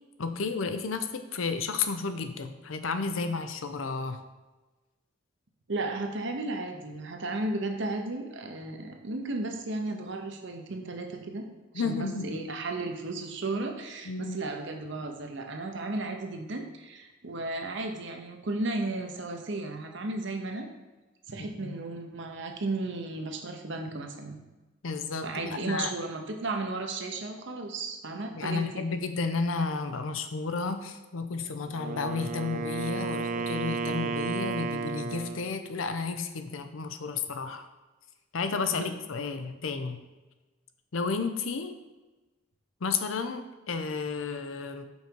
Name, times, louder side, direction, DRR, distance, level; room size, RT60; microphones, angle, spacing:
voice 1, 0.2-4.2 11.7-12.3 14.0-14.4 21.4-21.7 24.8-25.9 28.3-37.7 38.3-40.0 40.9-41.8 42.8-44.9, left 4 dB, 80° left, 8 dB, 0.6 m, -32 dB
voice 2, 5.7-11.4 11.7-20.7 21.3-24.4 25.2-28.9 38.7-38.9, right 2 dB, 60° right, 4 dB, 0.9 m, -34 dB
Wind instrument woodwind instrument, 31.7-35.5, right 4 dB, 40° right, 0.4 m, -33 dB
5.5 x 5.1 x 4.6 m, 1.1 s
head